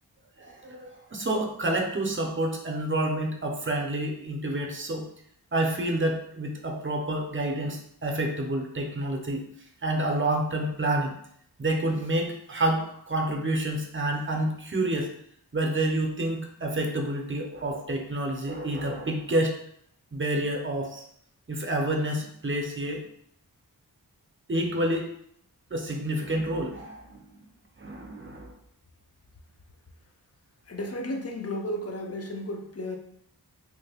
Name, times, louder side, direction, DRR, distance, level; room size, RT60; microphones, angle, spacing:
voice 1, 0.4-5.1 5.5-9.5 9.8-11.1 11.6-15.1 15.5-19.5 20.1-21.0 21.5-23.0 24.5-25.1 25.7-27.4 27.8-28.5, right 1 dB, 30° right, 2 dB, 0.6 m, -28 dB
voice 2, 30.7-33.0, left 1 dB, 40° left, 3 dB, 0.5 m, -33 dB
3.2 x 2.1 x 3.4 m, 0.68 s
wide cardioid pair, 45°, 40 cm